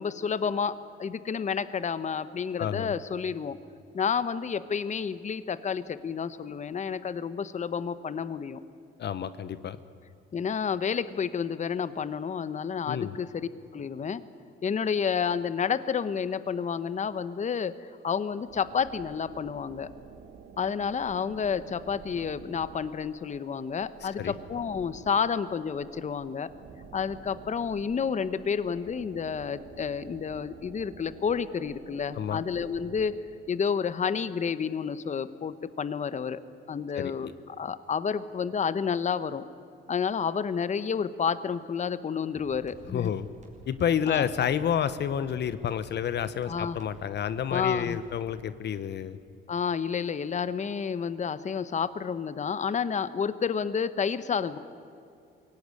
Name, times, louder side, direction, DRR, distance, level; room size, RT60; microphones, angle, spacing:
voice 1, 0.0-3.6 3.9-8.6 10.3-14.2 14.6-19.9 20.6-26.5 26.9-33.1 33.5-36.4 36.7-39.4 39.9-43.1 44.1-44.3 46.5-46.8 47.5-48.0 49.5-54.6, left 6 dB, 35° left, 14 dB, 0.9 m, -30 dB
voice 2, 2.6-2.9 9.0-9.8 12.9-13.1 24.0-24.3 32.1-32.4 36.9-37.3 42.9-43.3 43.7-49.2, left 9 dB, 60° left, 13 dB, 0.9 m, -29 dB
sound 1, 18.5-33.2, right 6 dB, 65° right, 1.3 m, -49 dB
sound 2, 42.3-48.3, right 2 dB, 35° right, 4.8 m, -52 dB
22.0 x 17.5 x 9.7 m, 2.5 s
cardioid pair, 90°, 20 cm